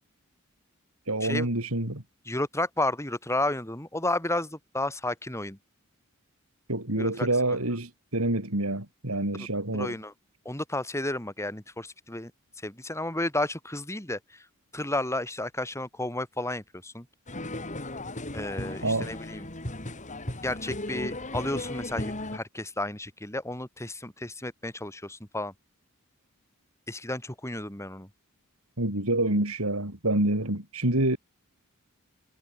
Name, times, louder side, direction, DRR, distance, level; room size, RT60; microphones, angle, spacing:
voice 1, 1.1-2.0 6.7-10.0 18.8-19.1 28.8-31.2, right 1 dB, 90° right, 5.4 m, -27 dB
voice 2, 2.3-5.6 7.0-7.3 9.7-10.1 10.5-12.3 12.6-14.2 14.7-17.1 18.3-19.5 20.4-25.5 26.9-28.1, left 1 dB, 15° left, 5.4 m, -32 dB
sound 1, 17.3-22.4, left 1 dB, 35° left, 4.3 m, -36 dB
head